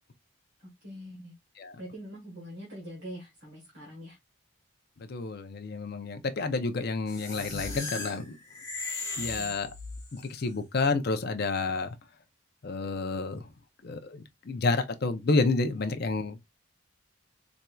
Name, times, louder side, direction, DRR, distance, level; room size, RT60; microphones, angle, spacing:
voice 1, 0.8-1.3 1.8-4.2, equal, 55° right, 1.4 m, -43 dB
voice 2, 5.0-8.4 9.2-9.7 10.1-12.0 12.6-13.5 13.8-16.4, left 3 dB, 50° left, 0.5 m, -30 dB
sound 1, 7.1-10.3, left 3 dB, 15° left, 1.3 m, -37 dB
4.3 x 2.5 x 2.2 m
head